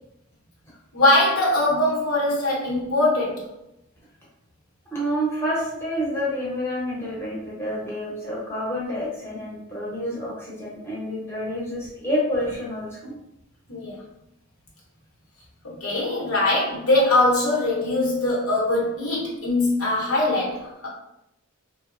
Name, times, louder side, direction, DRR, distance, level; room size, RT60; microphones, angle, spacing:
voice 1, 0.9-3.5 13.7-14.0 15.6-20.9, left 1 dB, 80° left, -5 dB, 0.9 m, -22 dB
voice 2, 4.9-13.1, equal, 10° left, -7 dB, 0.7 m, -28 dB
3.0 x 2.0 x 2.4 m, 0.86 s
head